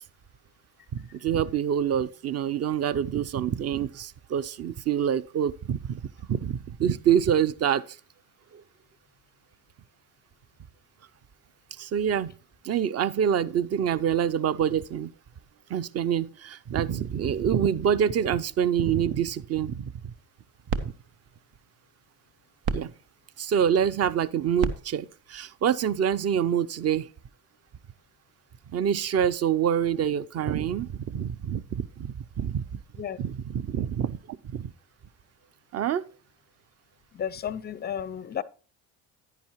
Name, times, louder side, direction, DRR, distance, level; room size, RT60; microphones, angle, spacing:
voice 1, 0.9-6.0 6.3-7.8 8.5-8.6 11.8-12.3 12.6-15.1 15.7-20.1 20.8-20.9 22.7-22.9 23.4-27.1 28.7-32.8 33.2-34.7 35.7-36.1, right 8 dB, 35° right, 0.5 m, -26 dB
sound 1, 20.1-26.5, right 5 dB, 75° right, 1.1 m, -37 dB
voice 2, 32.7-33.2 37.1-38.4, left 9 dB, 20° left, 0.4 m, -33 dB
10.0 x 9.8 x 3.0 m
supercardioid pair, 75°, 47 cm